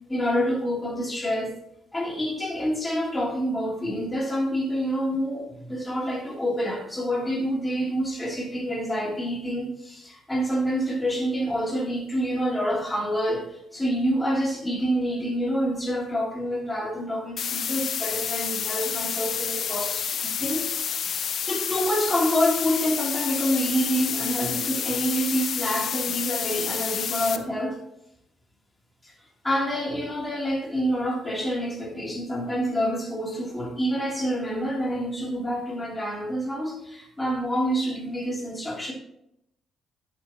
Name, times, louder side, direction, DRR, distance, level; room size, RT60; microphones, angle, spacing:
voice 1, 0.1-1.5 1.9-20.7 21.2-27.8 29.0-29.1 29.4-38.9, equal, 15° left, -1 dB, 3.0 m, -27 dB
sound 1, 17.4-27.4, left 8 dB, 60° left, 0.6 m, -29 dB
11.0 x 8.3 x 2.9 m, 0.77 s
cardioid pair, 90°, 0 cm